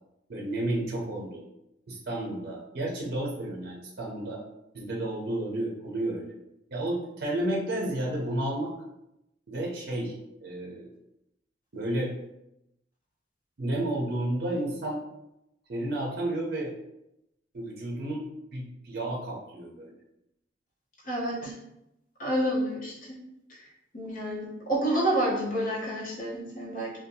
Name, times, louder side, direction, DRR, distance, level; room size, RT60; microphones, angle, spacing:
voice 1, 0.3-1.4 1.9-4.4 4.7-6.3 6.7-8.7 9.5-10.1 10.4-10.9 11.7-12.1 13.6-15.0 15.7-16.7 17.5-19.9, right 1 dB, 55° right, -2 dB, 0.5 m, -31 dB
voice 2, 21.1-21.5 22.2-22.9 23.9-26.9, right 1 dB, 45° left, -5 dB, 0.9 m, -28 dB
2.6 x 2.2 x 2.6 m, 0.86 s
head